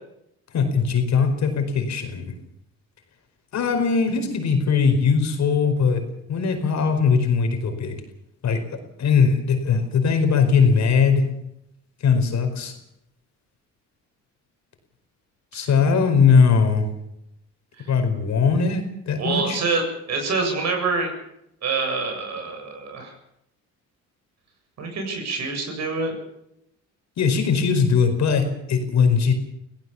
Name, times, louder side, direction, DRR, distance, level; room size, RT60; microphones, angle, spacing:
voice 1, 0.5-2.3 3.5-8.0 8.4-8.6 9.0-11.3 12.0-12.8 15.5-16.9 17.9-19.6 27.2-29.3, left 5 dB, 65° left, 7 dB, 4.9 m, -20 dB
voice 2, 19.2-19.8 20.1-21.1 21.6-23.1 24.8-26.1, right 4 dB, 60° right, 3 dB, 7.6 m, -26 dB
25.0 x 17.0 x 7.2 m, 0.79 s
cardioid pair, 90°, 30 cm